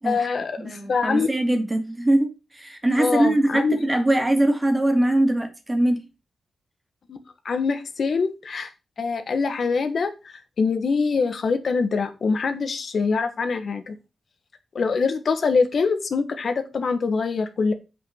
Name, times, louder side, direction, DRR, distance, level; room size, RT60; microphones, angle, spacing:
voice 1, 0.0-1.3 2.9-3.8 7.1-7.2 7.4-8.7 9.0-14.0 14.7-17.7, left 4 dB, 60° left, 1.6 m, -24 dB
voice 2, 0.6-6.0, right 1 dB, 15° right, 2.3 m, -22 dB
8.1 x 5.7 x 5.9 m
wide cardioid pair, 110°, 0 cm